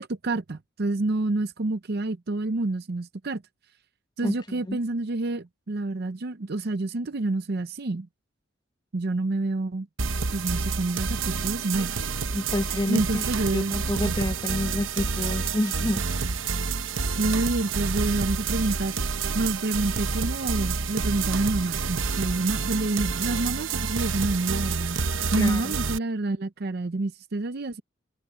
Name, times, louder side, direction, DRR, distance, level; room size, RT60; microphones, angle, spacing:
voice 1, 0.0-3.4 4.2-8.1 8.9-9.9 10.3-11.9 12.9-13.8 14.0-14.2 17.0-19.0 19.3-25.0 25.3-27.8, right 2 dB, 50° right, 0.6 m, -28 dB
voice 2, 4.2-4.8 12.3-16.0 25.4-25.8, left 1 dB, 20° left, 1.0 m, -29 dB
sound 1, 10.0-26.0, right 5 dB, 75° right, 1.0 m, -28 dB
head